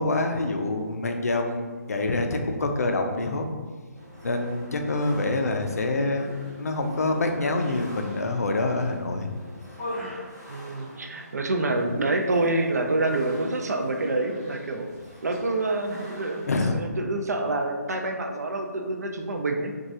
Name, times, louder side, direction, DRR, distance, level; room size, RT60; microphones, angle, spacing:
voice 1, 0.0-3.5 4.2-9.3 16.5-16.8, left 2 dB, 60° left, 4 dB, 0.4 m, -26 dB
sound 1, 4.0-16.5, equal, 80° right, 1.0 m, -48 dB
Human voice, 5.9-6.5 7.1-8.9 9.3-11.3 11.6-12.1 12.3-12.6 13.0-16.7, left 1 dB, 5° right, 0.7 m, -42 dB
voice 2, 10.5-14.9 15.2-16.5 16.7-19.7, right 2 dB, 65° right, 3 dB, 0.4 m, -27 dB
2.9 x 2.3 x 2.5 m, 1.5 s
figure-of-eight pair, 140°, 9 cm